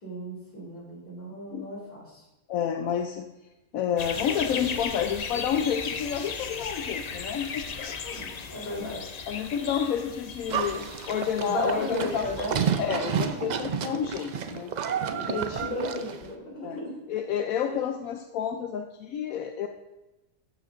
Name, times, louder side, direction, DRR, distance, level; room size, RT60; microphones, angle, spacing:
voice 1, 0.0-2.2 8.1-9.2 11.4-12.6 15.2-17.0 17.7-17.8, equal, 40° left, -5 dB, 3.3 m, -35 dB
voice 2, 2.5-3.3 3.7-8.9 9.3-12.5 12.8-14.7 15.1-15.7 16.6-16.8 17.1-19.7, left 8 dB, 80° left, 4 dB, 1.1 m, -30 dB
sound 1, 4.0-13.3, left 5 dB, 65° left, 0.4 m, -37 dB
Livestock farm animals working animals, 10.5-16.3, right 7 dB, 80° right, 0.4 m, -30 dB
12.5 x 8.9 x 2.6 m, 0.97 s
omnidirectional pair, 1.5 m